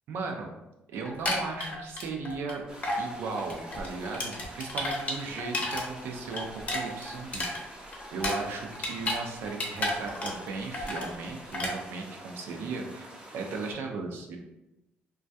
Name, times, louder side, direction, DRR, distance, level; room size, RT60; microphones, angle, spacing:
voice 1, 0.1-0.5 0.9-2.6 3.0-7.8 8.1-14.4, right 4 dB, 75° right, 2 dB, 0.4 m, -36 dB
sound 1, 1.1-2.5 2.8-3.0 3.4-5.8 6.1-9.2 9.5-10.5 10.7-11.1 11.5-11.7, left 1 dB, 40° left, 0.7 m, -32 dB
sound 2, 2.7-13.7, right 1 dB, 20° right, 0.5 m, -47 dB
2.2 x 2.2 x 2.6 m, 0.94 s
cardioid pair, 95°, 4 cm